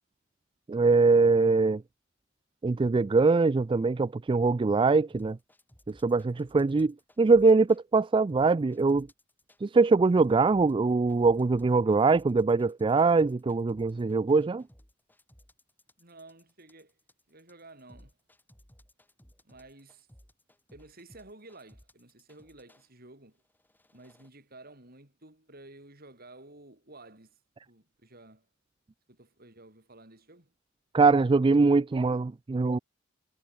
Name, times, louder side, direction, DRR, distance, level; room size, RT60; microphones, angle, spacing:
voice 1, 0.7-1.8 2.6-5.4 5.9-9.1 9.6-14.6 30.9-32.8, right 4 dB, 25° right, 0.3 m, -23 dB
sound 1, 5.1-7.8 8.3-9.6 9.9-22.9 23.5-24.3, equal, 10° left, 4.6 m, -59 dB
voice 2, 6.4-6.7 16.0-16.9 17.3-18.2 19.4-20.1 20.7-23.4 23.9-27.4 27.7-28.5 29.1-30.5, right 2 dB, 50° right, 7.5 m, -52 dB
head